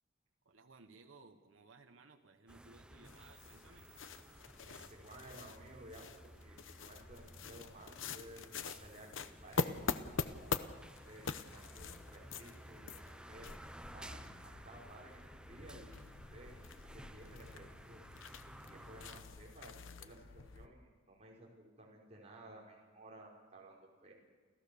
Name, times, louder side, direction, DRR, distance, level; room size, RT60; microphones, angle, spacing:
voice 1, 0.4-3.9, right 3 dB, 80° right, 5 dB, 1.2 m, -60 dB
sound 1, 2.5-19.2, right 1 dB, 5° right, 0.7 m, -55 dB
sound 2, 3.0-20.7, left 4 dB, 75° left, 0.9 m, -45 dB
voice 2, 4.6-10.0 10.3-16.0 16.3-16.6 16.9-18.3 18.6-24.1, right 1 dB, 35° right, -3 dB, 4.8 m, -56 dB
29.0 x 15.0 x 6.9 m, 1.5 s
head